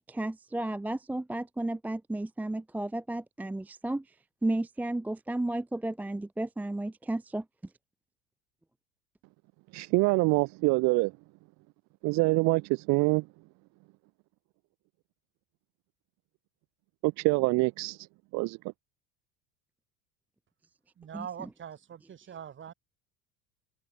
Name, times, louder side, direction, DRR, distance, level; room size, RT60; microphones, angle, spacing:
voice 1, 0.0-4.1 4.4-7.4 21.1-21.2, right 1 dB, 5° right, 0.5 m, -33 dB
voice 2, 9.7-11.1 12.0-13.2 17.0-18.1 18.3-18.6, right 25 dB, 60° right, 0.7 m, -25 dB
voice 3, 21.0-22.7, right 8 dB, 40° right, 7.7 m, -42 dB
supercardioid pair, 105°, 32 cm